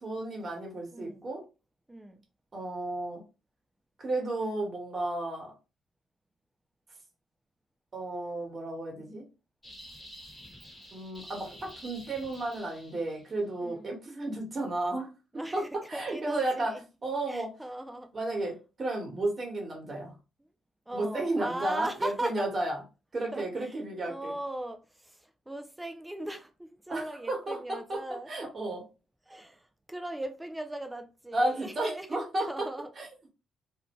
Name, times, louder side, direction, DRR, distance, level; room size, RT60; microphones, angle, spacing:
voice 1, 0.0-1.4 2.5-3.2 4.0-5.5 7.9-9.3 10.9-15.1 15.5-17.5 18.1-20.1 20.9-22.8 23.1-24.3 26.9-28.0 28.3-28.8 31.3-32.7 33.0-33.3, right 2 dB, 35° right, 1.3 m, -33 dB
voice 2, 0.9-1.2 1.9-2.2 13.6-14.0 15.3-16.8 17.3-18.1 20.9-22.5 23.3-28.3 29.3-32.1 32.5-32.9, right 1 dB, 10° right, 0.3 m, -39 dB
Heavy Laser Cannon, 9.6-13.3, equal, 10° left, 1.0 m, -49 dB
2.6 x 2.1 x 2.9 m
cardioid pair, 90°, 0 cm